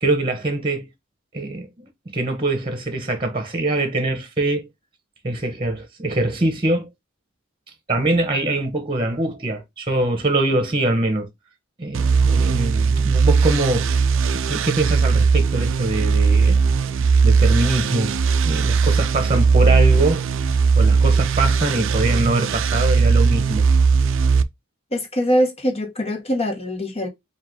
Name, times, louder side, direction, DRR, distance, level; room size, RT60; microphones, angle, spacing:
voice 1, 0.0-0.9 1.3-4.7 5.2-6.9 7.9-11.3 11.8-14.1 14.4-18.1 18.5-20.3 20.8-23.7, right 2 dB, 25° right, 1.0 m, -23 dB
sound 1, 11.9-24.4, right 5 dB, 65° right, 0.4 m, -18 dB
voice 2, 24.9-27.1, equal, 30° left, 1.2 m, -22 dB
4.6 x 2.5 x 3.7 m
head